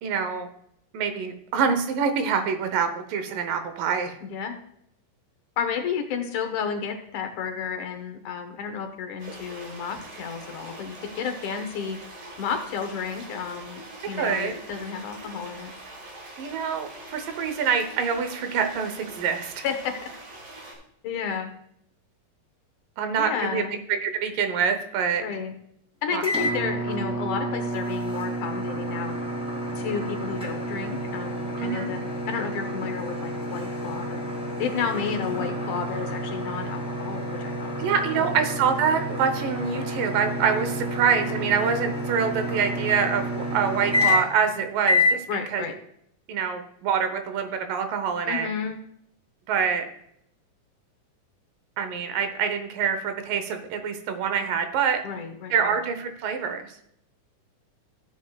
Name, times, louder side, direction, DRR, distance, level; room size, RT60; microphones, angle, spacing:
voice 1, 0.0-0.5 0.9-4.2 14.2-14.5 16.4-19.6 23.0-23.6 23.9-25.2 26.1-26.2 31.6-32.0 35.0-35.1 37.8-45.2 45.5-45.6 46.3-48.5 49.5-49.8 51.8-55.0 55.5-56.6, right 6 dB, 80° right, 8 dB, 2.6 m, -25 dB
voice 2, 4.2-4.6 5.6-12.0 12.4-15.7 19.6-20.1 21.0-21.5 23.2-23.8 25.2-25.5 26.0-29.1 29.8-34.2 34.6-37.7 38.1-38.3 45.3-45.7 48.3-48.8 55.0-55.8, left 6 dB, 70° left, 5 dB, 2.3 m, -32 dB
sound 1, 9.2-20.7, right 2 dB, 60° right, 3.7 m, -43 dB
sound 2, 26.2-44.5 44.8-45.2, left 1 dB, ahead, 2.1 m, -29 dB
15.0 x 8.1 x 2.4 m, 0.73 s
omnidirectional pair, 3.8 m